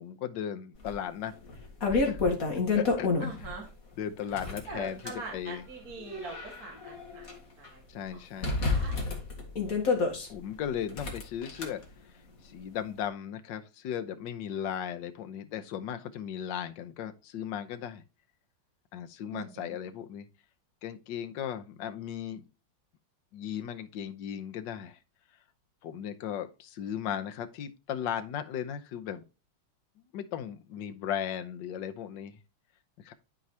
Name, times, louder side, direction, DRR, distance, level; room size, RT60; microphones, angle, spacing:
voice 1, 0.0-1.3 1.9-2.2 2.6-3.5 4.0-5.7 7.9-8.6 10.3-11.8 12.4-18.0 18.9-20.3 20.8-22.5 23.3-25.0 25.8-29.2 30.1-32.4 33.0-33.1, left 9 dB, 65° left, 1.5 m, -36 dB
sound 1, 0.9-1.0 1.5-3.5 4.2-5.2 5.9-7.3 7.6-7.7 8.4-10.3 10.9-11.7, left 4 dB, 40° left, 2.2 m, -29 dB
voice 2, 3.2-3.6 4.4-7.3 7.6-9.1 19.3-19.7, right 3 dB, 45° right, 2.3 m, -43 dB
12.0 x 4.7 x 2.8 m
omnidirectional pair, 2.3 m